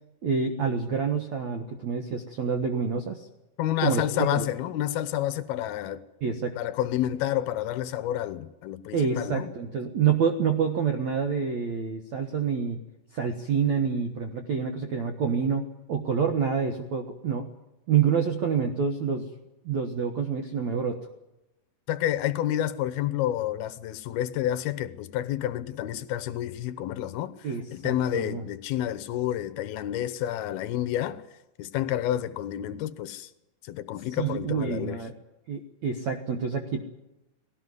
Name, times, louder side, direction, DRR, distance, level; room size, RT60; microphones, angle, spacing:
voice 1, 0.2-3.3 3.8-4.0 4.3-4.5 6.2-6.6 8.9-12.8 13.1-17.5 17.9-19.3 19.7-21.0 27.4-28.4 34.2-35.1 35.5-36.8, right 6 dB, 75° right, 1.6 m, -27 dB
voice 2, 3.6-6.0 6.6-9.5 21.9-31.2 31.6-33.3 33.6-35.0, left 12 dB, 75° left, 2.4 m, -29 dB
20.5 x 18.0 x 9.6 m
omnidirectional pair, 5.5 m